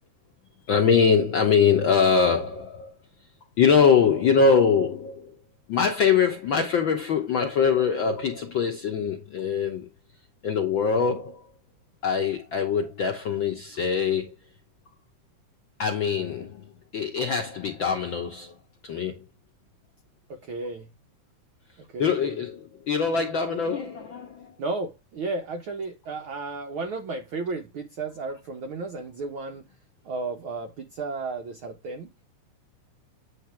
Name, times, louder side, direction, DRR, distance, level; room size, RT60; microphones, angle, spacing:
voice 1, 0.7-3.0 3.6-5.3 5.7-9.9 10.4-11.4 12.0-14.3 15.8-18.5 18.8-19.2 22.0-24.5, left 6 dB, 70° left, 1.1 m, -23 dB
voice 2, 20.3-20.9 21.9-22.4 24.6-29.7 30.0-32.1, right 3 dB, 85° right, 1.1 m, -33 dB
9.0 x 3.3 x 5.8 m
omnidirectional pair, 3.5 m